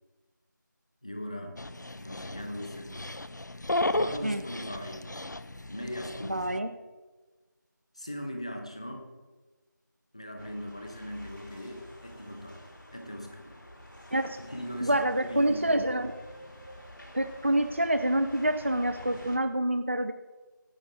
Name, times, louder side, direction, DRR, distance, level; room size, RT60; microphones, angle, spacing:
voice 1, 1.0-1.6 1.9-3.1 3.9-5.0 5.7-6.4 7.9-9.1 10.1-12.6 12.9-13.6 14.4-15.8, equal, 20° left, 4 dB, 1.0 m, -39 dB
Dog, 1.6-6.6, left 2 dB, 65° left, 0.8 m, -34 dB
voice 2, 6.3-6.7 14.1-14.4 14.8-16.1 17.1-20.1, right 1 dB, 35° right, 8 dB, 0.5 m, -27 dB
sound 1, 10.4-19.4, equal, 80° left, 4.3 m, -48 dB
16.5 x 11.5 x 3.6 m, 1.3 s
figure-of-eight pair, 175°, 11 cm